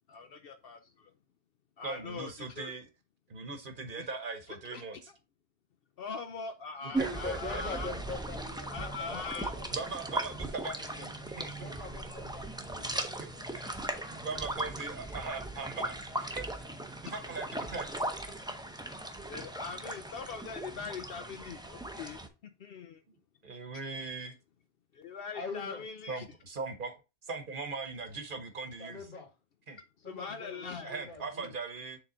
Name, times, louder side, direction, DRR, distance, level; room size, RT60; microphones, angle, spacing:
voice 1, 0.1-1.1 1.8-2.7 4.0-4.1 4.7-4.8 6.0-7.9 8.7-9.5 19.3-23.0 24.9-26.2 30.0-30.9, left 5 dB, 65° left, 0.8 m, -42 dB
voice 2, 1.8-2.9 3.3-5.1 7.0-7.6 9.5-11.8 13.1-13.3 13.5-16.5 17.0-18.0 20.7-20.9 23.1-23.2 23.4-24.3 26.1-29.1 29.7-29.8 30.8-32.0, right 4 dB, 55° right, 1.1 m, -40 dB
voice 3, 6.8-9.6 11.6-13.9 25.3-25.8 28.8-29.3 30.0-31.5, left 2 dB, 50° left, 2.0 m, -43 dB
sound 1, 6.9-22.3, right 1 dB, 5° right, 0.5 m, -38 dB
6.9 x 3.8 x 3.8 m
omnidirectional pair, 1.1 m